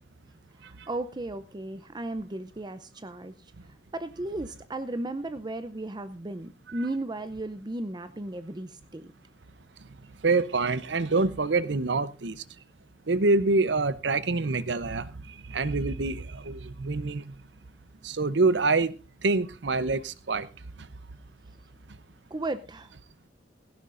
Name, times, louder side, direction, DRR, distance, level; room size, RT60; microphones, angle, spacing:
voice 1, 0.6-3.5 3.9-9.1 22.3-22.9, right 2 dB, 25° right, 0.6 m, -35 dB
voice 2, 10.2-12.4 13.1-17.3 18.0-18.9 19.2-20.5, right 3 dB, 70° right, 0.8 m, -26 dB
17.0 x 15.5 x 2.6 m
head